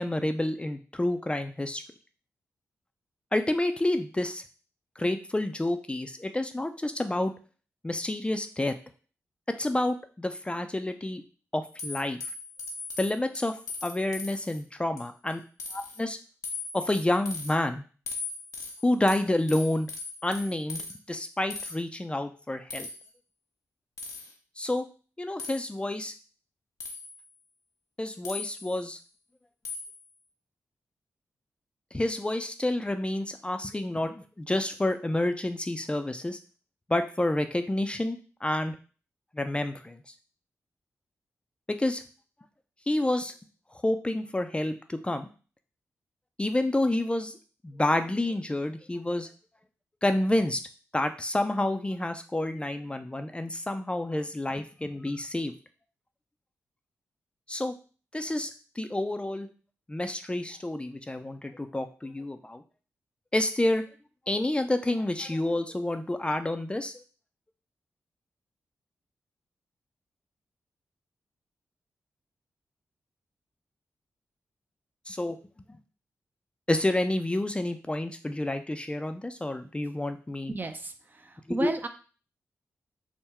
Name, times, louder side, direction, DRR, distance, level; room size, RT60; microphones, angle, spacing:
voice 1, 0.0-1.8 3.3-4.4 5.0-7.3 7.8-8.7 9.6-11.2 11.5-12.2 13.0-15.4 15.7-16.2 16.7-17.8 18.8-19.9 20.2-22.9 24.6-24.9 25.2-26.1 28.0-29.0 31.9-36.4 36.9-38.7 39.3-40.0 41.7-42.0 42.9-43.3 43.8-45.3 46.4-47.4 47.6-49.3 50.0-50.6 50.9-55.5 57.5-57.7 58.1-58.5 58.8-59.5 59.9-62.6 63.3-63.8 64.3-67.0 75.1-75.4 75.7-75.8 76.7-80.5 81.6-81.7, left 1 dB, 20° left, 7 dB, 0.4 m, -29 dB
sound 1, 11.8-14.6 15.0-15.3 15.6-16.0 16.4-17.5 18.1-20.9 21.5-21.7 22.7-23.1 24.0-24.3 25.4-25.6 26.8-27.3 28.2-28.8 29.7-30.0, left 4 dB, 85° left, 0.6 m, -39 dB
voice 2, 80.5-81.9, right 2 dB, 35° right, 7 dB, 0.6 m, -33 dB
3.6 x 2.2 x 4.2 m, 0.38 s
supercardioid pair, 40°, 6 cm